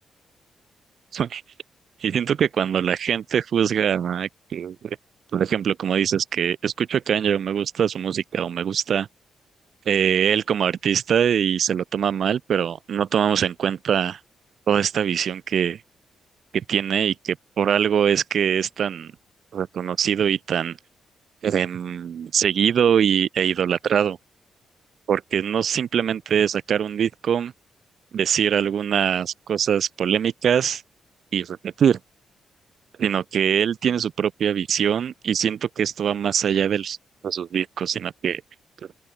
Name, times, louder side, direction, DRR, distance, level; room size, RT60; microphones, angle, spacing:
voice 1, 2.0-5.0 5.3-9.1 9.9-14.2 14.7-15.8 16.5-19.1 19.5-20.8 21.4-24.2 25.1-27.5 28.1-30.8 31.3-32.0 33.0-37.0 37.2-38.4, right 8 dB, 65° right, 2.3 m, -23 dB
open air
cardioid pair, 80°, 0 cm